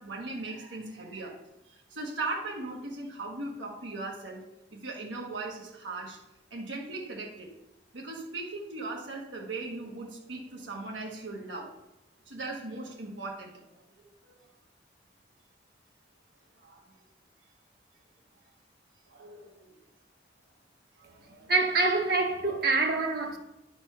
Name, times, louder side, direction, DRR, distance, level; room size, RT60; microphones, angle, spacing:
voice 1, 0.0-1.4 1.6-4.4 4.7-6.2 6.5-7.5 7.9-11.7 12.3-13.5 14.0-14.5 16.6-17.0 18.3-18.4 19.1-19.8 21.0-21.5, right 2 dB, 85° right, 1.3 m, -39 dB
voice 2, 21.5-23.4, right 3 dB, 55° right, 1.0 m, -26 dB
10.0 x 4.4 x 5.5 m
head